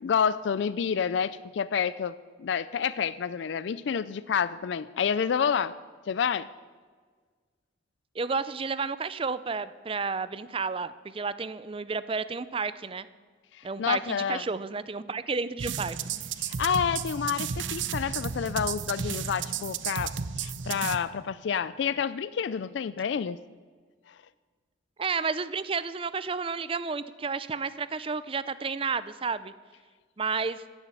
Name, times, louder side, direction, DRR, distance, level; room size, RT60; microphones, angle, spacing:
voice 1, 0.0-2.1 2.4-5.7 6.1-6.5 13.6-14.4 16.4-23.4, left 7 dB, 65° left, 16 dB, 0.4 m, -29 dB
voice 2, 8.1-13.1 13.6-16.0 25.0-29.5 30.2-30.6, right 4 dB, 30° right, 15 dB, 0.5 m, -31 dB
sound 1, 15.6-21.0, right 6 dB, 75° right, 0.7 m, -33 dB
15.5 x 7.2 x 8.2 m, 1.5 s
head